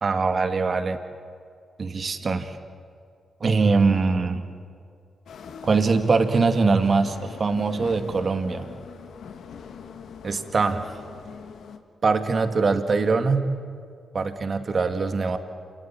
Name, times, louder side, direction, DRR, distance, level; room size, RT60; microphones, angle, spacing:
voice 1, 0.0-1.0 1.8-2.6 3.4-4.4 5.6-8.7 10.2-10.9 12.0-13.5 14.1-15.4, right 4 dB, 50° right, 8 dB, 2.3 m, -22 dB
sound 1, 5.3-11.8, left 6 dB, 75° left, 1.8 m, -42 dB
28.0 x 19.5 x 9.0 m, 2.3 s
supercardioid pair, 45°, 0 cm